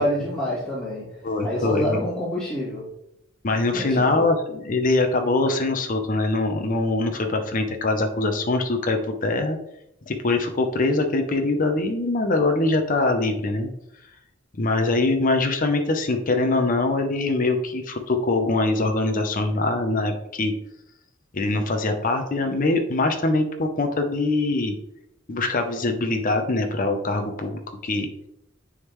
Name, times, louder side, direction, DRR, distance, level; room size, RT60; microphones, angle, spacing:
voice 1, 0.0-2.9 3.7-4.3, left 1 dB, 5° left, -12 dB, 2.2 m, -27 dB
voice 2, 1.2-2.0 3.4-9.6 10.1-13.7 14.6-20.5 21.3-24.8 25.3-28.1, left 2 dB, 45° left, 5 dB, 0.6 m, -23 dB
9.5 x 3.7 x 3.1 m, 0.82 s
head